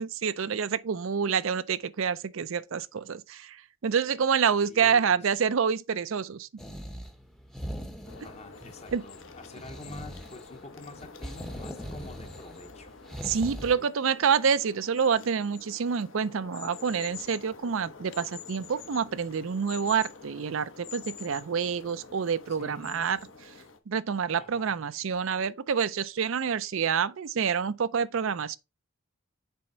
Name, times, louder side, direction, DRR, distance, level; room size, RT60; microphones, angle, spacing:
voice 1, 0.0-6.5 8.9-9.0 13.2-23.2 23.9-28.6, right 6 dB, 70° right, 0.5 m, -27 dB
voice 2, 4.7-5.4 8.2-12.9 13.7-13.9 22.5-23.1 24.4-25.0, left 2 dB, 30° left, 0.9 m, -47 dB
sound 1, 6.6-13.8, equal, ahead, 0.7 m, -41 dB
sound 2, 8.0-23.8, left 6 dB, 65° left, 1.0 m, -47 dB
6.9 x 4.5 x 3.9 m
head